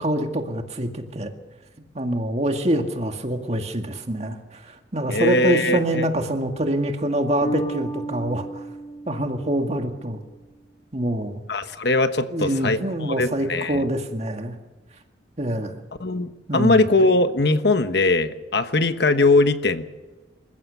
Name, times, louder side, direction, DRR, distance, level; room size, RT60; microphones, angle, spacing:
voice 1, 0.0-1.3 2.0-8.6 9.1-10.2 10.9-11.4 12.3-14.6 15.4-15.8 16.5-16.8, right 1 dB, 35° right, 5 dB, 2.0 m, -25 dB
voice 2, 5.1-6.1 11.5-12.8 13.2-13.8 16.0-19.8, left 2 dB, 65° left, 10 dB, 1.2 m, -20 dB
Bass guitar, 7.4-10.4, right 2 dB, 25° left, 1.4 m, -33 dB
27.0 x 15.5 x 7.0 m, 1.2 s
head